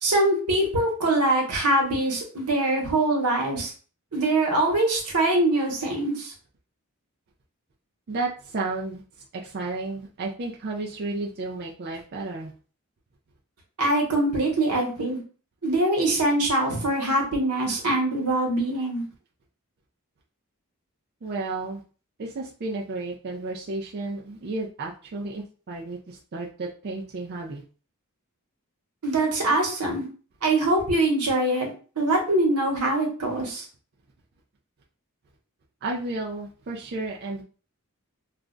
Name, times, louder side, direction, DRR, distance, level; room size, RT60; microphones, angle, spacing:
voice 1, 0.0-3.7 4.1-6.3 13.8-15.2 15.6-19.0 29.0-30.0 30.4-31.7 32.0-33.6, right 1 dB, 90° right, 0 dB, 1.0 m, -23 dB
voice 2, 8.1-12.5 21.2-21.8 22.2-27.6 35.8-37.4, right 3 dB, 45° right, -2 dB, 0.4 m, -32 dB
2.4 x 2.1 x 3.7 m, 0.39 s
head